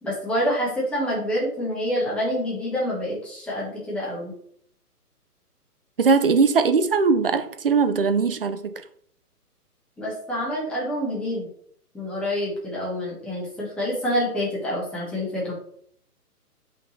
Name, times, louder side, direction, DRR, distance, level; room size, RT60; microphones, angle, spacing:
voice 1, 0.0-4.3 10.0-11.5 11.9-15.5, equal, ahead, 1.3 m, -27 dB
voice 2, 6.0-8.7, right 5 dB, 40° right, 0.5 m, -20 dB
5.5 x 3.9 x 4.4 m
figure-of-eight pair, 135°, 47 cm